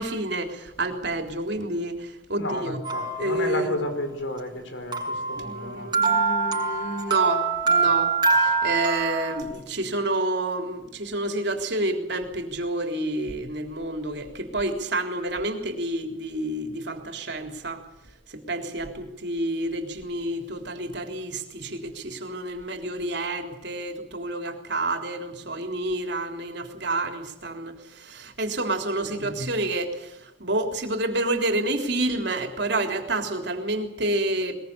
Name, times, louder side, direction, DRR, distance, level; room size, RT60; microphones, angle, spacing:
voice 1, 0.0-2.8 3.2-3.8 5.4-17.8 18.3-34.6, right 2 dB, 60° right, 4 dB, 3.6 m, -29 dB
voice 2, 2.3-5.9 29.0-29.3, left 1 dB, 75° left, 7 dB, 5.0 m, -32 dB
sound 1, 2.8-3.8 4.9-9.4, right 4 dB, 25° right, 5.7 m, -24 dB
21.5 x 21.5 x 8.5 m, 0.84 s
head